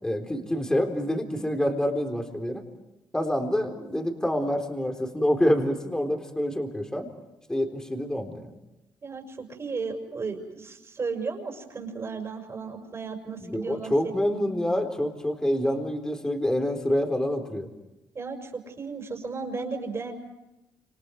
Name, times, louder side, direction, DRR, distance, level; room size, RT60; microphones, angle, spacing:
voice 1, 0.0-2.6 3.1-7.1 7.5-8.5 13.4-17.7, equal, 10° left, 4 dB, 4.0 m, -27 dB
voice 2, 9.0-14.1 18.1-20.1, right 4 dB, 35° right, 3 dB, 6.3 m, -34 dB
29.5 x 28.0 x 4.9 m, 0.97 s
cardioid pair, 105°, 8 cm